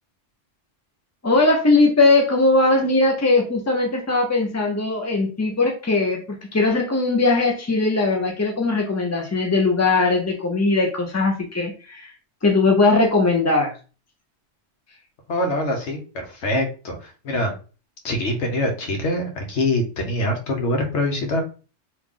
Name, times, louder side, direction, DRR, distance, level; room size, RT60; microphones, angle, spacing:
voice 1, 1.2-6.2 6.5-12.1 12.4-13.7, left 3 dB, 25° left, 1 dB, 0.3 m, -19 dB
voice 2, 15.3-17.5 18.0-21.4, left 1 dB, 80° left, 3 dB, 1.2 m, -24 dB
3.2 x 2.4 x 3.6 m, 0.35 s
omnidirectional pair, 1.2 m